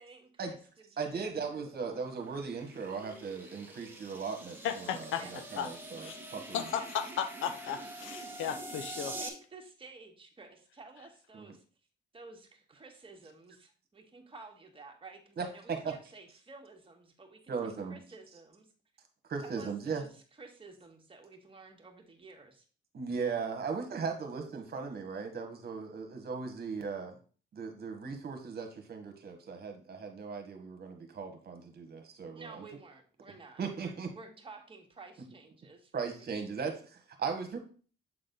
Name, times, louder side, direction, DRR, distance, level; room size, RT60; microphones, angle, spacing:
voice 1, 0.0-1.3 5.1-5.3 6.7-6.9 7.8-7.9 9.1-11.6 12.1-18.7 19.4-20.1 20.4-22.7 32.3-35.9 36.2-36.4, right 3 dB, 25° right, 2 dB, 1.8 m, -52 dB
voice 2, 1.0-6.7 11.3-11.4 15.4-15.9 17.5-18.0 19.3-20.0 22.9-27.2 27.5-32.6 33.6-34.1 35.9-37.6, right 5 dB, 50° right, 5 dB, 1.6 m, -38 dB
sound 1, 1.3-9.3, right 2 dB, 10° right, 1.5 m, -46 dB
voice 3, 4.6-5.2 5.6-5.7 6.0-6.2 6.5-9.2, left 8 dB, 85° left, 9 dB, 0.8 m, -35 dB
7.7 x 3.9 x 3.9 m, 0.40 s
cardioid pair, 90°, 20 cm